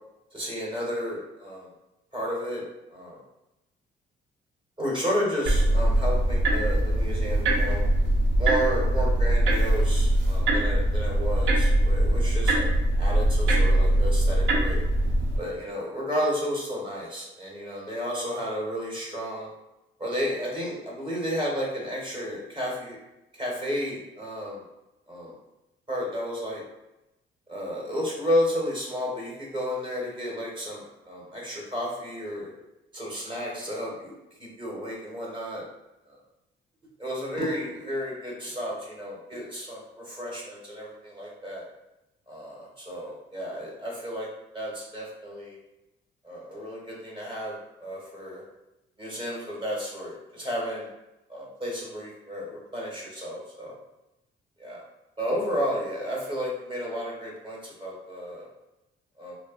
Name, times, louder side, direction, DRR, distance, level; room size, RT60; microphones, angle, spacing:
voice 1, 0.3-1.7 2.1-2.6 2.9-3.2 4.8-7.8 8.4-12.6 13.0-14.8 15.4-19.5 20.0-23.0 23.4-24.6 25.1-25.3 25.9-26.6 27.5-32.5 32.9-34.1 34.4-35.6 37.0-39.8 40.1-41.6 42.3-44.3 44.5-45.6 46.2-47.6 47.8-48.4 49.0-50.9 51.3-53.8 54.6-54.8 55.2-58.5 59.2-59.3, equal, 25° right, -4 dB, 0.8 m, -32 dB
sound 1, 5.5-15.4, right 1 dB, 70° right, 0.5 m, -22 dB
2.6 x 2.2 x 2.2 m, 0.95 s
cardioid pair, 90°, 20 cm